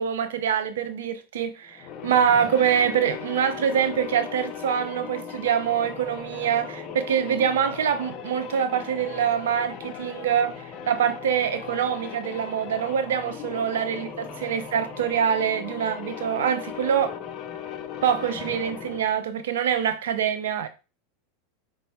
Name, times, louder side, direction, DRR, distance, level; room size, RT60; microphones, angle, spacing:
voice 1, 0.0-17.1 18.0-20.7, right 8 dB, 80° right, 0.4 m, -25 dB
sound 1, 1.7-19.2, left 7 dB, 45° left, 0.6 m, -38 dB
4.2 x 2.1 x 4.4 m
hypercardioid pair, 100°, 0 cm